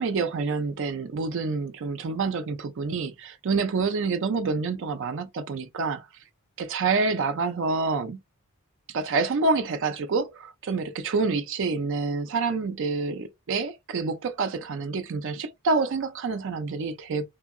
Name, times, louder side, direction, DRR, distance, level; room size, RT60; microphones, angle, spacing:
voice 1, 0.0-6.1 6.6-8.2 8.9-17.3, right 4 dB, 60° right, 0.4 m, -27 dB
2.7 x 2.7 x 2.5 m
head